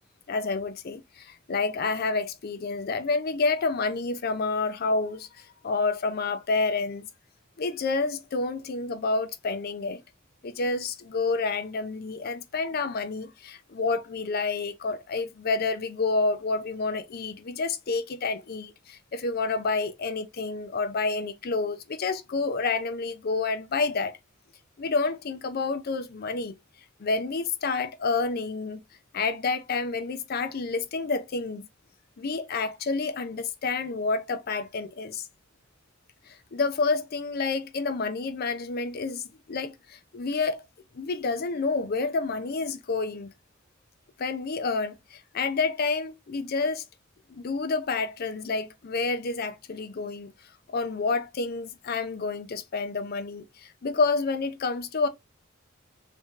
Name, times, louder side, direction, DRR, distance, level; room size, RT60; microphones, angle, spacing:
voice 1, 0.3-7.1 7.6-10.0 10.4-24.2 24.8-26.6 27.0-28.8 29.1-31.7 32.2-35.3 36.3-40.6 40.9-43.3 44.2-46.8 47.3-50.3 50.7-55.1, left 4 dB, 50° left, 0.5 m, -29 dB
3.5 x 2.8 x 3.6 m
head